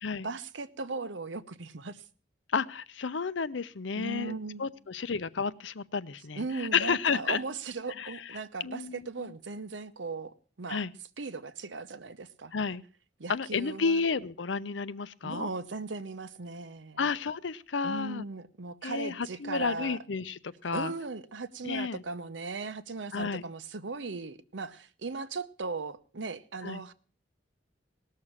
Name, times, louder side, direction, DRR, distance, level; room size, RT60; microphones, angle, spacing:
voice 1, 0.2-2.0 4.0-4.6 6.4-10.9 11.2-12.5 13.2-14.0 15.2-17.1 17.8-20.0 20.7-26.9, right 3 dB, 90° right, 0.8 m, -38 dB
voice 2, 2.5-7.4 8.0-8.1 8.6-9.1 10.7-10.9 12.5-12.8 13.3-15.5 17.0-18.2 18.8-20.9 21.6-22.0 23.1-23.4 26.6-26.8, left 5 dB, 90° left, 0.6 m, -31 dB
18.5 x 6.6 x 7.2 m
head